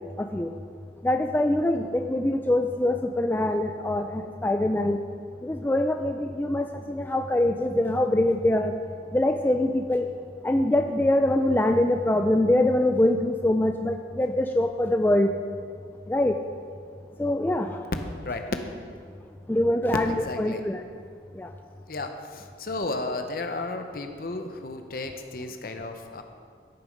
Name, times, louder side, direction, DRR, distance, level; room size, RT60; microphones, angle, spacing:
voice 1, 0.2-0.5 1.0-5.0 5.4-8.7 9.1-10.1 10.4-15.3 16.1-16.3 17.2-17.8 19.5-20.8 21.4-21.5, left 1 dB, 10° left, 5 dB, 0.3 m, -24 dB
voice 2, 20.1-20.6 21.9-26.2, left 2 dB, 55° left, 5 dB, 0.9 m, -33 dB
12.0 x 6.9 x 5.2 m, 2.1 s
head